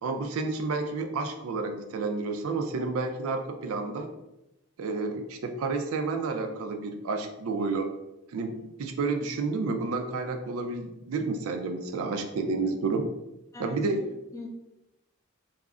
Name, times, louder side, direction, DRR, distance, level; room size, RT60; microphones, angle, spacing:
voice 1, 0.0-4.1 4.8-7.9 8.3-13.1 13.6-14.0, right 3 dB, 80° right, 6 dB, 0.4 m, -30 dB
voice 2, 13.5-14.5, left 3 dB, 15° left, 1 dB, 0.3 m, -43 dB
2.4 x 2.0 x 3.5 m, 0.90 s
head